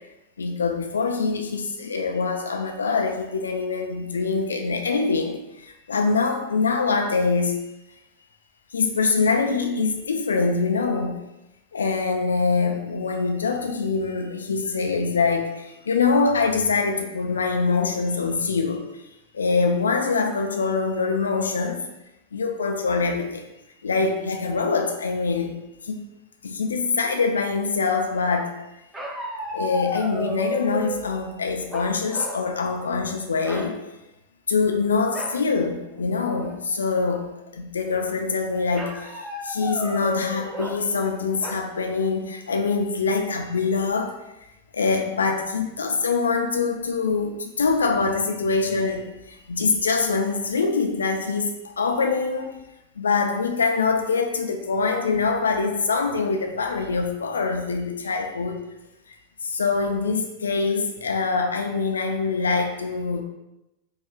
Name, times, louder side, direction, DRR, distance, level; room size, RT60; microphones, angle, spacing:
voice 1, 0.4-5.4 5.9-7.6 8.7-11.2 11.7-15.5 15.9-18.8 19.3-21.8 22.3-23.4 23.8-25.5 25.9-26.0 26.4-28.5 29.5-33.8 34.5-37.3 37.5-39.0 39.4-44.1 44.7-49.0 49.5-51.5 51.8-52.5 53.0-58.6 59.4-63.2, left 4 dB, 70° left, 4 dB, 0.4 m, -24 dB
sound 1, 28.9-31.1 31.7-32.4 32.8-33.0 33.4-33.7 35.1-35.4 35.9-36.0 36.4-36.8 38.7-40.8 41.4-41.5, equal, 10° right, 0.5 m, -32 dB
4.8 x 2.3 x 2.3 m, 0.94 s
figure-of-eight pair, 90°, 0 cm